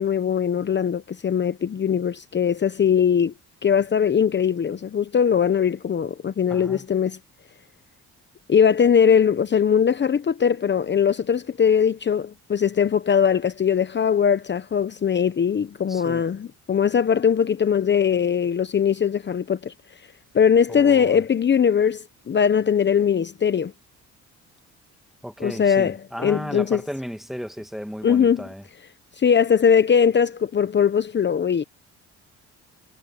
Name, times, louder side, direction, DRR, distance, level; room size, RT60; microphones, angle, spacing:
voice 1, 0.0-3.3 3.6-7.2 8.5-19.7 20.3-23.7 25.4-26.0 26.2-26.8 28.0-28.5 29.2-31.6, left 7 dB, 35° left, 0.9 m, -20 dB
voice 2, 6.5-6.9 15.9-16.3 20.7-21.2 25.2-28.6, equal, ahead, 1.8 m, -34 dB
cardioid pair, 90°, 30 cm